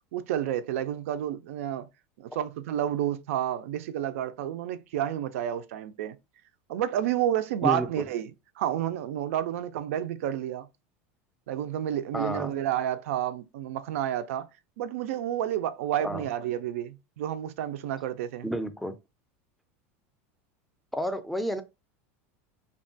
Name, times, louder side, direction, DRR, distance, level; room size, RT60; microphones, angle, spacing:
voice 1, 0.1-1.9 2.2-6.2 6.7-8.3 8.6-10.7 11.5-14.5 14.8-18.5, right 11 dB, 85° right, 0.4 m, -30 dB
voice 2, 7.6-8.1 12.1-12.5 16.0-16.3 18.4-19.0 20.9-21.6, equal, ahead, 0.4 m, -30 dB
2.8 x 2.2 x 2.6 m
supercardioid pair, 125°, 7 cm